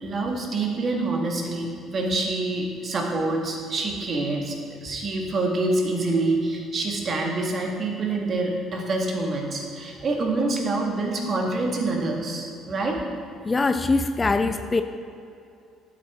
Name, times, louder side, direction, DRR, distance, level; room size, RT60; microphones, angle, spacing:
voice 1, 0.0-4.6 4.8-13.0, right 2 dB, 40° right, 1 dB, 1.8 m, -26 dB
voice 2, 13.4-14.8, left 3 dB, 25° left, 9 dB, 0.5 m, -22 dB
12.0 x 8.2 x 3.7 m, 2.6 s
figure-of-eight pair, 50°, 0 cm